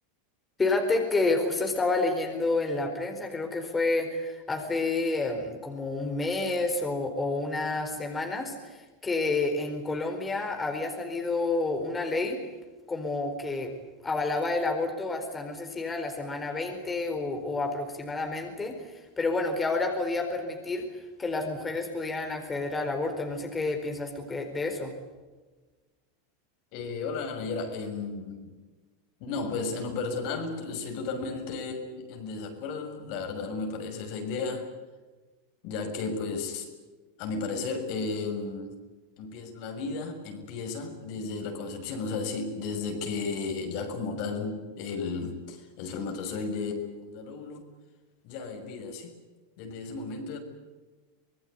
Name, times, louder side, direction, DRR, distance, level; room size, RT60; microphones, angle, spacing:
voice 1, 0.6-12.4 12.9-13.7 14.0-20.9 21.2-24.9, left 3 dB, 15° left, 4 dB, 4.4 m, -29 dB
voice 2, 26.7-28.5 29.2-34.6 35.6-36.7 37.2-38.7 39.2-47.6 48.2-49.1 49.6-50.4, left 4 dB, 60° left, 4 dB, 6.5 m, -34 dB
25.5 x 19.5 x 9.6 m, 1.3 s
hypercardioid pair, 105°, 0 cm